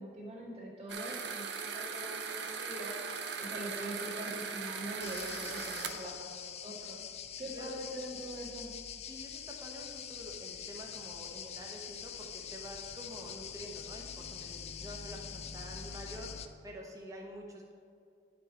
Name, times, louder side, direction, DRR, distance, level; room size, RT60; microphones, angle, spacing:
voice 1, 0.0-2.9 3.4-7.0 7.4-8.7, right 1 dB, 35° right, -5 dB, 1.8 m, -43 dB
sound 1, 0.9-5.9, right 5 dB, 65° right, 0.6 m, -39 dB
sound 2, 5.0-16.5, left 8 dB, 35° left, 0.3 m, -44 dB
voice 2, 7.4-7.7 9.1-17.8, equal, 20° right, 0 dB, 1.0 m, -48 dB
9.4 x 5.4 x 4.3 m, 2.5 s
head